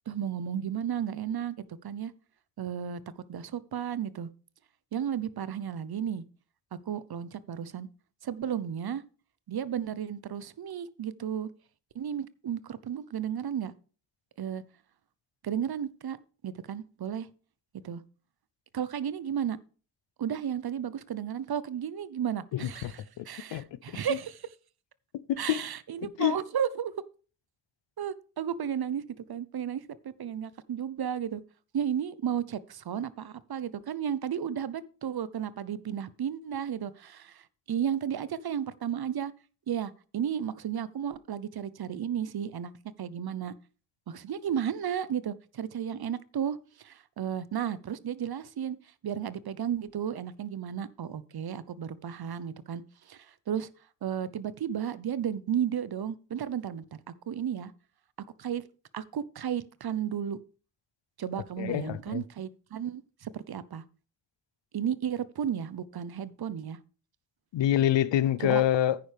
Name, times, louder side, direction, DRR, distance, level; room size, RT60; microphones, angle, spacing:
voice 1, 0.1-2.1 2.6-3.0 3.3-4.3 4.9-6.2 6.9-7.9 8.2-9.0 9.5-11.5 11.9-13.7 14.4-14.6 15.4-16.2 16.4-17.3 17.8-18.0 18.7-19.6 20.2-24.5 25.4-26.9 28.0-29.0 29.3-31.4 31.7-39.3 39.7-42.7 43.0-43.5 44.1-53.7 54.0-57.7 58.4-58.6 58.9-60.4 61.2-63.8 64.7-66.8 68.4-68.6, right 9 dB, 60° right, 0.9 m, -33 dB
voice 2, 22.5-23.7 24.1-24.2 25.3-25.6 26.0-26.4 61.6-62.2 67.5-69.0, left 12 dB, 80° left, 0.7 m, -27 dB
10.5 x 9.3 x 3.5 m
supercardioid pair, 40°, 43 cm